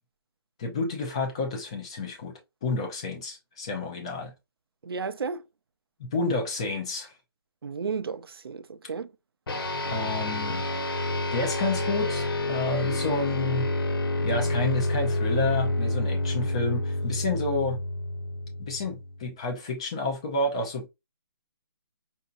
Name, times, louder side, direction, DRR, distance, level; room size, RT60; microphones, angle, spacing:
voice 1, 0.6-4.3 6.0-7.1 9.9-10.6 11.3-13.7 14.2-17.8 18.6-20.9, left 3 dB, 15° left, 0.5 m, -30 dB
voice 2, 4.8-5.4 7.6-9.1, right 5 dB, 65° right, 0.6 m, -33 dB
sound 1, 9.5-19.2, left 1 dB, 60° left, 1.2 m, -28 dB
5.6 x 2.7 x 2.5 m
hypercardioid pair, 180°, 13 cm